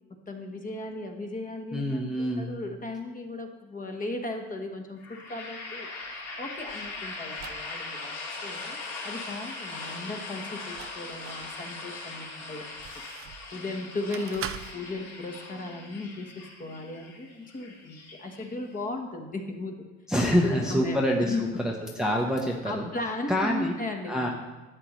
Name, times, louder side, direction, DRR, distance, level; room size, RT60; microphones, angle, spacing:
voice 1, 0.3-12.8 13.5-14.5 14.7-19.9 20.4-21.6 22.6-24.3, left 2 dB, 25° left, 3 dB, 1.2 m, -36 dB
voice 2, 1.7-2.5 20.1-21.3 22.0-22.9 23.3-23.7 24.1-24.3, equal, ahead, -1 dB, 0.9 m, -26 dB
sound 1, 5.0-18.8, left 3 dB, 45° left, 2.3 m, -40 dB
sound 2, 6.0-7.7 10.4-11.5 12.0-13.5 14.1-14.7, right 10 dB, 40° right, 0.5 m, -42 dB
11.0 x 7.6 x 3.2 m, 1.1 s
supercardioid pair, 100°, 35 cm